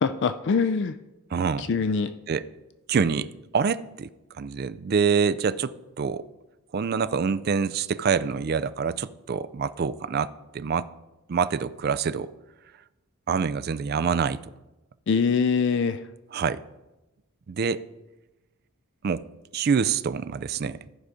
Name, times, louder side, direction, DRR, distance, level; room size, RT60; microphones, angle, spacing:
voice 1, 0.0-1.0 1.6-2.1 15.1-16.1, left 5 dB, 50° left, 0.3 m, -23 dB
voice 2, 1.3-1.7 2.3-2.4 2.9-4.1 4.4-6.2 6.7-10.9 11.3-12.3 13.3-14.4 16.3-16.6 17.5-17.8 19.0-19.2 19.5-20.8, right 6 dB, 45° right, 0.3 m, -26 dB
14.5 x 4.8 x 5.1 m
head